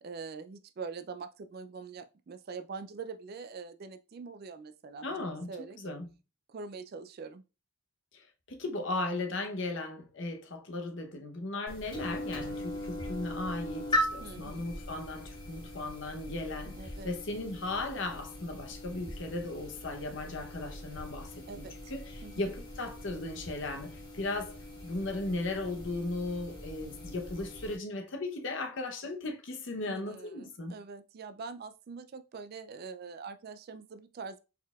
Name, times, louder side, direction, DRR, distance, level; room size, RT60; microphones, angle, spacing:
voice 1, 0.0-5.8 6.5-7.4 14.2-14.6 16.7-17.1 21.5-21.9 22.2-22.5 29.9-34.4, right 5 dB, 45° right, 0.3 m, -44 dB
voice 2, 5.0-5.5 5.8-6.1 8.1-24.6 24.8-30.8, left 2 dB, 55° left, 0.8 m, -37 dB
sound 1, 11.7-27.8, left 1 dB, 20° left, 1.5 m, -40 dB
4.5 x 3.9 x 2.3 m
head